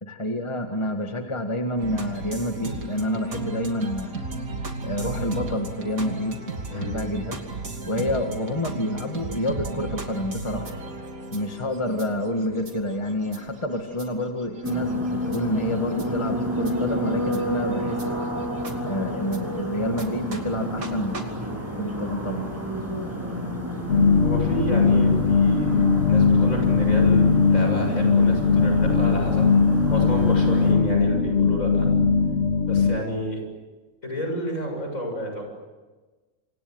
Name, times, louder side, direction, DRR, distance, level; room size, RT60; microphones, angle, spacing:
voice 1, 0.0-4.3 4.8-6.4 6.7-7.4 7.9-10.7 11.3-18.0 18.9-21.3 21.8-22.5, left 1 dB, 20° left, 4 dB, 1.9 m, -28 dB
sound 1, 1.8-19.4 20.0-20.1 20.3-20.4 20.8-20.9 21.1-21.2, right 3 dB, 80° right, 3.3 m, -36 dB
sound 2, 14.6-30.7, equal, 10° right, 7.4 m, -30 dB
sound 3, 23.9-33.0, left 5 dB, 50° left, 2.8 m, -19 dB
voice 2, 24.2-25.7 26.1-29.5 29.9-31.9 32.7-33.4 34.0-35.4, equal, 70° left, 3 dB, 7.8 m, -30 dB
28.0 x 26.5 x 8.0 m, 1.3 s
omnidirectional pair, 1.5 m